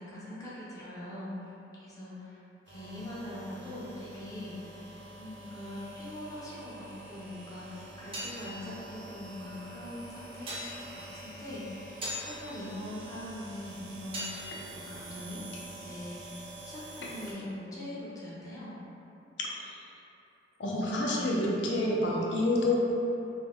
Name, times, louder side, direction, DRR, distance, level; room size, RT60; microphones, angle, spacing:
voice 1, 0.0-1.3 1.7-2.4 2.7-4.6 5.2-15.4 15.8-16.2 16.6-18.7, left 1 dB, 20° left, -9 dB, 0.5 m, -42 dB
sound 1, 2.6-17.3, right 1 dB, 75° right, 0.6 m, -47 dB
Tapping Metal ringing tone, 7.8-16.3, equal, 30° right, 0.5 m, -44 dB
voice 2, 19.4-19.9 20.6-22.7, left 1 dB, 75° left, -3 dB, 0.5 m, -28 dB
2.3 x 2.1 x 3.4 m, 3.0 s
head